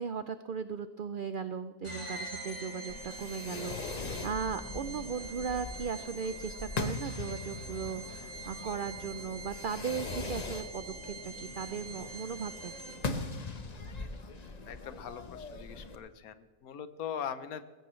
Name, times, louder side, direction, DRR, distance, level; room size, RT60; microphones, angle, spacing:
voice 1, 0.0-13.0, right 6 dB, 90° right, 11 dB, 0.4 m, -37 dB
sound 1, 1.8-13.2, right 2 dB, 10° left, 4.5 m, -45 dB
Fireworks, 2.9-16.0, left 3 dB, 35° left, 0.8 m, -41 dB
voice 2, 14.7-17.6, left 8 dB, 80° left, 12 dB, 1.3 m, -41 dB
20.5 x 16.0 x 3.2 m, 1.4 s
omnidirectional pair, 1.5 m